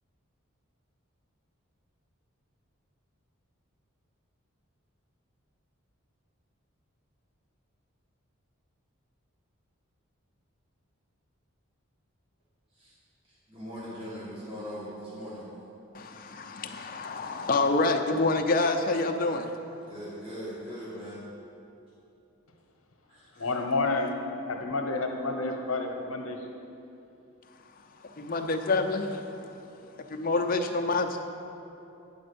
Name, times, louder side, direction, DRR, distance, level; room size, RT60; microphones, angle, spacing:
voice 1, 13.5-15.4 19.9-21.2 23.1-23.5, equal, 25° right, -9 dB, 1.4 m, -40 dB
voice 2, 15.9-19.5 28.2-29.2 30.1-31.2, left 3 dB, 40° left, 4 dB, 0.5 m, -27 dB
voice 3, 23.4-24.2 24.5-26.4, left 3 dB, 80° left, 3 dB, 0.9 m, -29 dB
9.5 x 4.3 x 6.9 m, 2.9 s
head